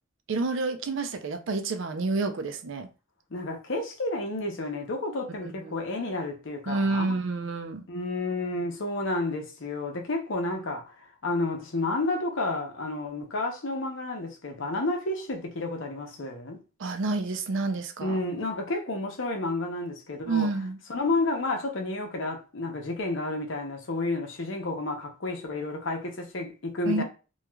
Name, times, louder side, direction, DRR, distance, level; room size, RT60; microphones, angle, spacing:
voice 1, 0.3-2.9 5.4-5.5 6.7-7.9 16.8-18.2 20.3-20.8 26.9-27.0, right 3 dB, 65° right, 0.4 m, -29 dB
voice 2, 3.3-7.2 7.9-10.8 11.2-16.6 18.0-20.5 20.9-27.0, left 2 dB, 65° left, 0.7 m, -31 dB
3.0 x 2.3 x 2.2 m
head